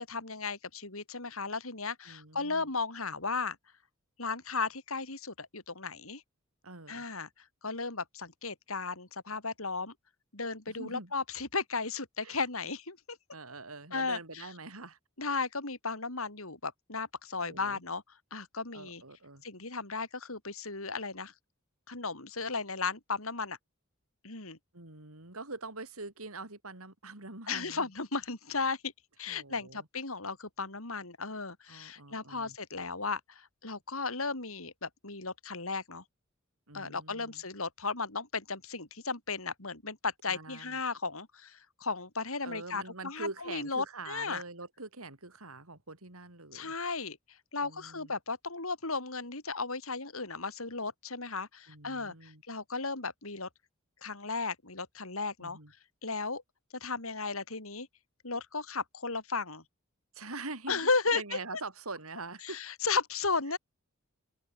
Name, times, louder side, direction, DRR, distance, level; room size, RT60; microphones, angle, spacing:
voice 1, 0.0-3.6 4.2-6.2 6.9-7.3 7.6-9.9 10.3-13.2 13.9-14.5 15.2-18.0 18.3-19.0 19.4-21.3 21.9-23.6 24.2-24.6 27.5-28.9 29.2-36.0 36.7-44.4 46.5-47.2 47.5-53.5 54.0-55.6 56.0-56.4 56.8-57.9 58.2-59.6 60.7-61.2 62.4-63.6, left 4 dB, 75° left, 5.4 m, -35 dB
voice 2, 2.1-2.7 6.6-7.0 10.7-11.1 12.2-12.4 13.3-15.0 17.4-17.8 18.7-19.4 24.7-27.9 29.3-29.9 31.7-32.6 36.7-37.4 40.3-40.8 42.4-46.7 47.6-48.1 51.7-52.4 55.4-55.7 60.1-62.6, right 3 dB, 85° right, 5.4 m, -44 dB
head